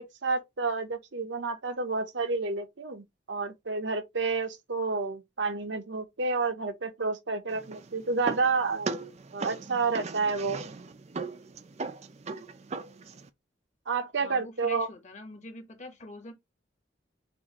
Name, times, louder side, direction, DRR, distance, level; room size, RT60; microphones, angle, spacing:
voice 1, 0.0-8.9 9.3-10.6 13.9-14.9, right 4 dB, 65° right, 0.8 m, -30 dB
sound 1, 7.5-13.3, right 3 dB, 35° right, 0.4 m, -38 dB
voice 2, 14.2-16.3, left 2 dB, 35° left, 1.1 m, -44 dB
6.2 x 2.5 x 2.9 m
head